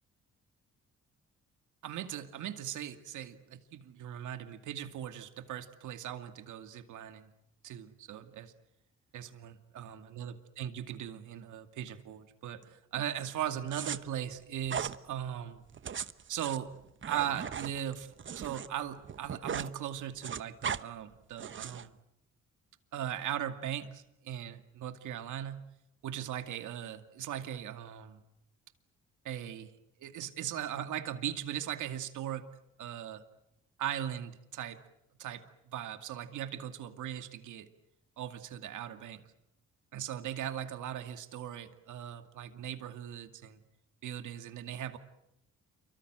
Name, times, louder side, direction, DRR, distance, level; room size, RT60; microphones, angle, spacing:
voice 1, 1.8-7.3 7.6-8.5 9.1-15.6 16.3-16.7 17.1-22.0 22.9-25.6 26.0-28.2 29.2-29.7 30.0-32.4 32.8-33.2 33.8-34.8 35.2-37.7 38.2-39.3 39.9-43.6 44.0-45.0, right 10 dB, 80° right, 8 dB, 2.4 m, -39 dB
sound 1, 13.7-14.0 14.7-15.0 15.7-18.7 19.0-19.7 20.0-20.8 21.4-21.9, right 7 dB, 40° right, 1.1 m, -38 dB
29.0 x 24.0 x 7.9 m, 0.82 s
cardioid pair, 90°, 30 cm